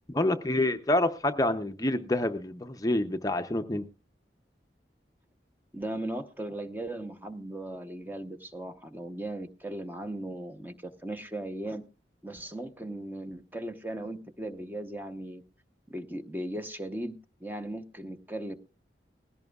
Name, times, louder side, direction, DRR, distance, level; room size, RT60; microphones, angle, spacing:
voice 1, 0.1-3.8, left 1 dB, 20° left, 7 dB, 0.6 m, -27 dB
voice 2, 5.7-11.9 12.2-15.4 15.9-18.5, right 1 dB, 10° right, 8 dB, 0.8 m, -37 dB
19.5 x 16.0 x 2.4 m, 0.34 s
head